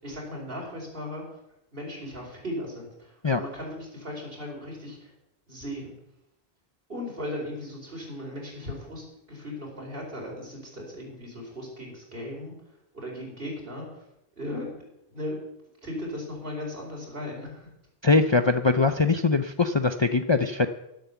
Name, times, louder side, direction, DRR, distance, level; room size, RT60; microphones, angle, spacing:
voice 1, 0.0-1.4 1.7-5.1 5.5-5.9 6.9-12.5 12.9-14.0 14.4-14.8 15.1-15.4 15.8-17.7, left 1 dB, 65° right, -1 dB, 4.8 m, -37 dB
voice 2, 18.0-20.7, left 3 dB, 35° left, 9 dB, 0.5 m, -22 dB
11.5 x 11.5 x 7.1 m, 0.85 s
omnidirectional pair, 1.1 m